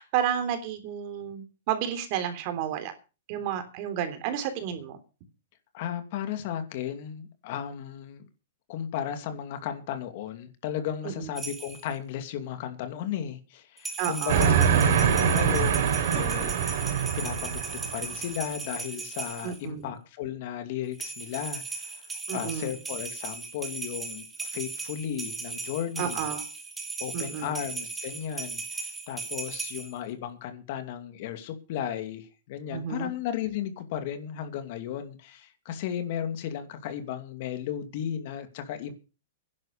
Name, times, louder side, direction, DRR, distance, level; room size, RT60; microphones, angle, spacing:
voice 1, 0.0-2.9 3.3-5.0 11.2-11.3 14.0-14.5 19.4-19.9 22.3-22.7 26.0-26.4 27.1-27.6 32.7-33.1, right 9 dB, 45° right, 3.4 m, -31 dB
voice 2, 5.7-8.2 8.7-16.8 17.2-22.0 22.3-26.3 27.0-38.9, left 9 dB, 50° left, 2.5 m, -35 dB
sound 1, 11.4-11.9 13.8-19.6 20.9-29.9, right 4 dB, 10° right, 2.6 m, -37 dB
Train, 14.3-18.2, right 7 dB, 65° right, 3.8 m, -24 dB
11.0 x 11.0 x 6.8 m
hypercardioid pair, 145°, 0 cm